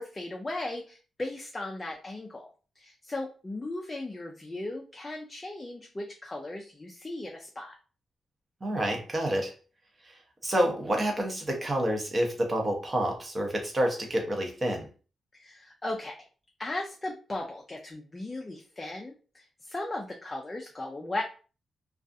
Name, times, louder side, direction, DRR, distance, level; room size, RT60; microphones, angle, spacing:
voice 1, 0.0-2.5 2.8-7.8 15.3-16.2 16.6-21.2, left 2 dB, 15° left, 1 dB, 0.3 m, -37 dB
voice 2, 8.6-9.5 10.0-14.9, right 1 dB, 25° right, 2 dB, 0.6 m, -28 dB
2.4 x 2.3 x 2.5 m, 0.36 s
wide cardioid pair, 155°, 0 cm